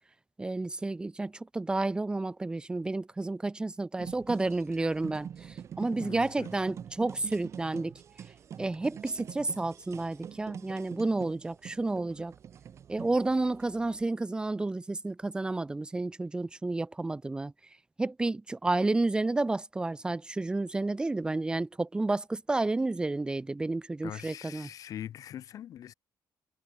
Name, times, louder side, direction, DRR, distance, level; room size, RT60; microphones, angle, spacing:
voice 1, 0.4-7.9 8.6-12.3 12.9-17.5 18.0-24.7, right 2 dB, 10° right, 1.9 m, -31 dB
sound 1, 4.0-14.1, right 8 dB, 40° right, 2.6 m, -45 dB
voice 2, 6.0-6.5 24.0-25.9, left 10 dB, 50° left, 2.2 m, -42 dB
cardioid pair, 155°, 7 cm